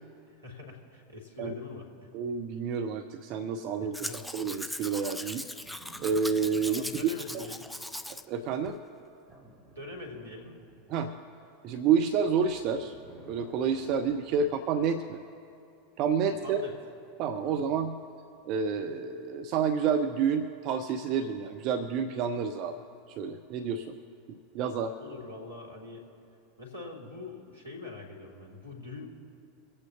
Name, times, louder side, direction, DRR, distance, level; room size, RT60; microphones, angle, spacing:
voice 1, 0.3-1.9 3.8-4.3 6.7-7.7 9.8-10.6 14.3-14.4 16.4-16.7 17.4-17.7 25.0-26.0 26.6-29.1, left 3 dB, 90° right, -1 dB, 2.1 m, -43 dB
voice 2, 2.1-5.5 6.0-6.8 7.3-7.4 8.3-8.8 10.9-11.1 11.6-12.9 13.3-15.2 16.0-16.6 17.2-18.0 18.4-22.8 23.2-24.0 24.3-24.9, right 6 dB, 45° right, 9 dB, 0.6 m, -29 dB
Domestic sounds home sounds, 3.9-8.2 8.6-8.7, left 1 dB, 5° left, 0.5 m, -39 dB
sound 1, 5.6-7.6 9.3-11.0 12.3-14.6 15.9-16.1, right 1 dB, 15° right, 2.7 m, -53 dB
25.0 x 8.5 x 2.8 m, 2.6 s
figure-of-eight pair, 85°, 0 cm